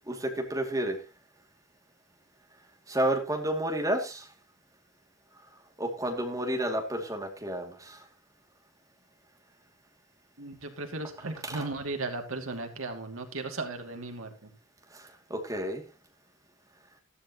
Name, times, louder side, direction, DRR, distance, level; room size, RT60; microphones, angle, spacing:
voice 1, 0.1-1.0 2.9-4.3 5.8-8.0 11.4-11.7 14.9-15.8, right 1 dB, 15° right, 3 dB, 2.6 m, -31 dB
voice 2, 10.4-14.5, right 2 dB, 70° right, 4 dB, 2.6 m, -36 dB
14.0 x 12.5 x 3.0 m, 0.29 s
head